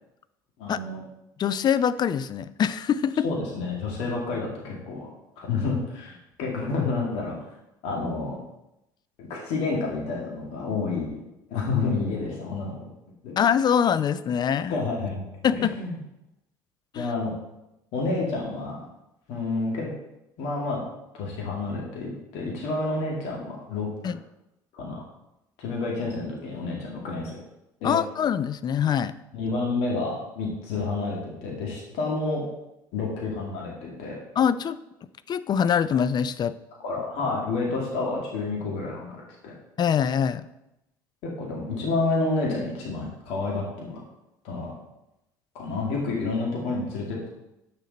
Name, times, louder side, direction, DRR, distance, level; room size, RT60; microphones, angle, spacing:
voice 1, 0.6-1.0 3.2-5.1 5.4-7.4 7.8-8.4 9.2-11.2 11.5-12.9 13.2-13.4 14.7-15.2 15.5-16.0 16.9-17.3 17.9-18.8 19.3-19.9 20.4-20.8 21.1-24.2 24.7-25.1 25.6-27.4 27.8-28.0 29.3-32.4 32.9-34.2 36.8-39.2 39.4-39.5 41.2-44.0 44.4-44.7 45.5-47.3, left 3 dB, 65° left, -2 dB, 2.2 m, -29 dB
voice 2, 1.4-3.2 13.4-14.7 15.4-15.7 16.9-17.1 24.0-24.2 27.8-29.1 34.4-34.8 35.3-36.6 39.8-40.5, left 8 dB, 40° left, 15 dB, 0.5 m, -24 dB
8.9 x 6.5 x 4.2 m, 0.89 s
hypercardioid pair, 65°, 11 cm